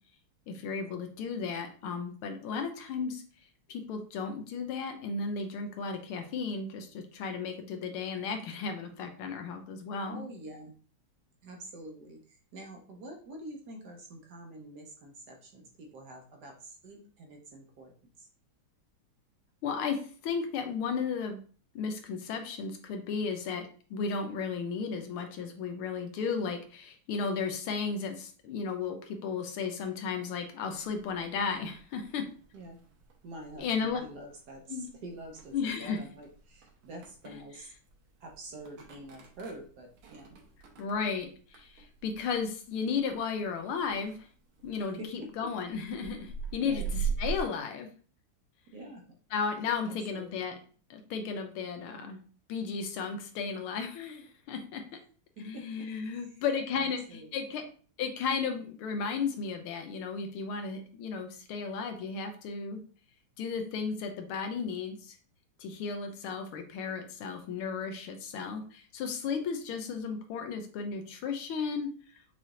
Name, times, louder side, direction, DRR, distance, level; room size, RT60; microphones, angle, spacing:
voice 1, 0.5-3.2 3.7-10.2 19.6-21.4 21.7-23.6 23.9-32.2 33.6-34.0 34.7-34.9 35.5-36.0 40.8-44.2 44.6-47.9 49.3-50.5 50.9-52.2 52.5-54.8 55.4-57.6 58.0-62.8 63.4-65.2 65.6-71.9, left 5 dB, 90° left, 6 dB, 1.7 m, -34 dB
voice 2, 10.0-10.7 11.4-17.9 18.2-18.3 32.5-32.8 33.2-37.7 38.2-40.4 45.0-45.1 46.6-46.9 48.7-49.0 49.8-50.6 55.4-55.6 56.3-56.4 56.7-57.3, right 1 dB, 60° right, 1 dB, 1.2 m, -46 dB
sound 1, 30.7-47.4, right 6 dB, 80° right, 1.8 m, -42 dB
5.8 x 3.2 x 2.4 m, 0.41 s
omnidirectional pair, 2.3 m